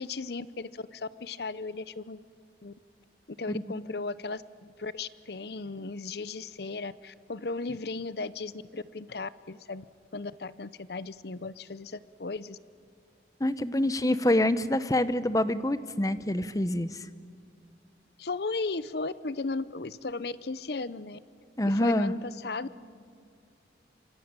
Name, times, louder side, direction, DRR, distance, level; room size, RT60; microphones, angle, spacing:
voice 1, 0.0-2.2 2.6-2.7 3.3-9.8 10.1-12.6 18.2-21.2 21.7-22.7, left 3 dB, 60° left, 17 dB, 0.7 m, -36 dB
voice 2, 13.4-17.1 21.6-22.1, left 1 dB, 20° left, 14 dB, 0.8 m, -26 dB
26.5 x 24.5 x 8.9 m, 2.3 s
head